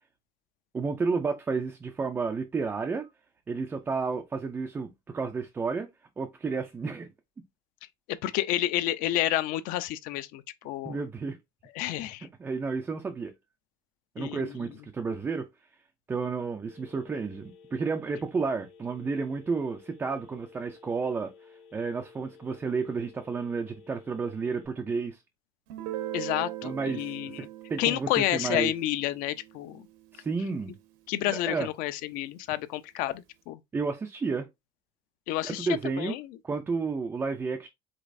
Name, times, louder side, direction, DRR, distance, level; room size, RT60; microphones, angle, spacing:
voice 1, 0.7-3.1 3.5-5.9 6.2-7.1 10.8-11.4 12.4-13.3 14.2-15.5 16.1-25.2 26.6-28.7 30.1-30.8 31.3-31.7 33.7-34.5 35.4-36.2 36.4-37.7, right 4 dB, 10° right, 0.3 m, -31 dB
voice 2, 8.1-11.0 11.7-12.3 14.2-14.8 26.1-27.5 27.8-29.9 31.1-33.6 35.3-35.7 36.0-36.4, left 14 dB, 55° left, 0.5 m, -30 dB
Telephone, 16.7-24.7, left 6 dB, 90° left, 1.4 m, -54 dB
Guitar, 25.7-31.2, right 14 dB, 75° right, 0.9 m, -41 dB
5.1 x 3.9 x 2.5 m
cardioid pair, 180°, 17 cm